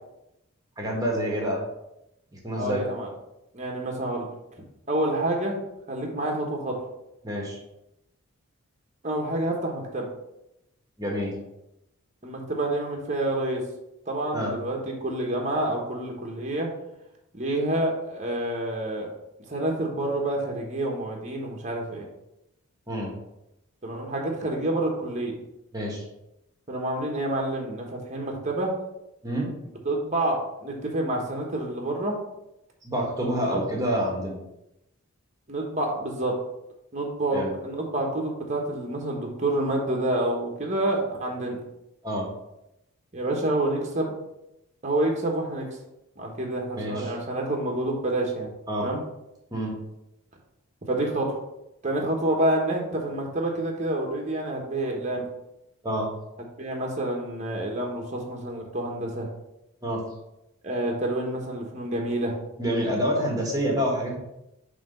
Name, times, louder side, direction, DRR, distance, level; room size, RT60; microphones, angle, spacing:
voice 1, 0.8-1.6 2.4-2.8 7.2-7.6 11.0-11.3 14.3-14.5 22.9-23.1 25.7-26.0 29.2-29.5 32.8-34.4 37.3-37.5 42.0-42.3 46.7-47.1 48.7-48.9 49.5-49.8 55.8-56.1 59.8-60.0 62.6-64.2, equal, 15° right, -2 dB, 1.5 m, -27 dB
voice 2, 2.5-3.1 3.5-4.3 4.9-5.6 5.9-6.8 9.0-10.1 12.2-13.6 14.1-16.7 17.3-19.1 19.5-22.1 23.8-25.4 26.7-28.7 29.8-32.2 33.5-33.6 35.5-36.4 36.9-41.6 43.1-44.1 44.8-45.8 46.2-48.5 48.8-49.0 50.9-51.4 51.8-55.3 56.6-59.3 60.6-62.4, right 1 dB, 30° right, 0 dB, 1.1 m, -28 dB
5.9 x 3.4 x 5.3 m, 0.87 s
head